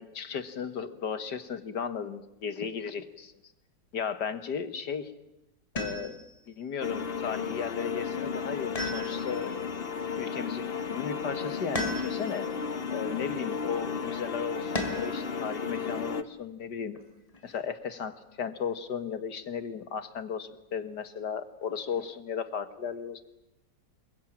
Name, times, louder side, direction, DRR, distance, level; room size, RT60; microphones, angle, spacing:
voice 1, 0.0-3.3 3.9-5.1 5.7-6.2 6.5-9.6 10.2-12.5 12.9-17.0 17.4-23.2, left 7 dB, 70° left, 11 dB, 2.1 m, -35 dB
sound 1, 5.8-6.4 8.7-9.5 11.7-12.5 14.7-15.3 17.0-17.6, left 1 dB, 20° left, 3.6 m, -35 dB
sound 2, 6.8-16.2, left 6 dB, 40° left, 1.1 m, -34 dB
27.0 x 23.0 x 8.8 m, 0.88 s
omnidirectional pair, 1.9 m